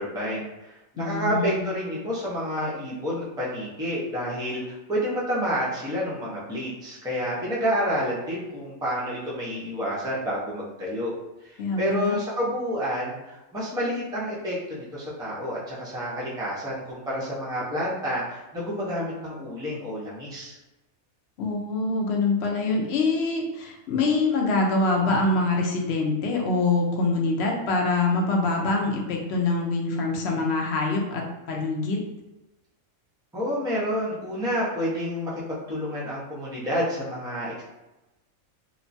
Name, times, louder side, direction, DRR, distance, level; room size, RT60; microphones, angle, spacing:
voice 1, 0.0-11.1 11.4-20.6 33.3-37.6, equal, 5° right, -7 dB, 0.4 m, -29 dB
voice 2, 1.0-1.7 11.6-12.2 21.4-32.0, left 3 dB, 60° left, 0 dB, 0.8 m, -25 dB
2.9 x 2.1 x 2.6 m, 1.0 s
omnidirectional pair, 1.4 m